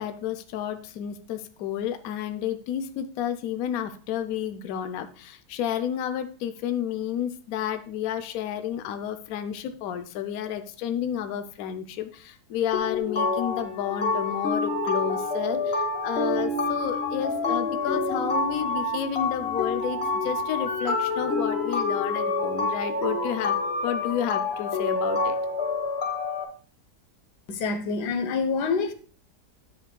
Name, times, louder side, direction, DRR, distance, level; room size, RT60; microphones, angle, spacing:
voice 1, 0.0-23.6 23.8-25.4, left 10 dB, 70° left, 1.0 m, -31 dB
sound 1, 12.7-26.4, left 3 dB, 45° left, 1.3 m, -27 dB
voice 2, 27.5-28.9, left 4 dB, 85° left, 1.5 m, -26 dB
10.5 x 7.6 x 2.2 m
omnidirectional pair, 1.7 m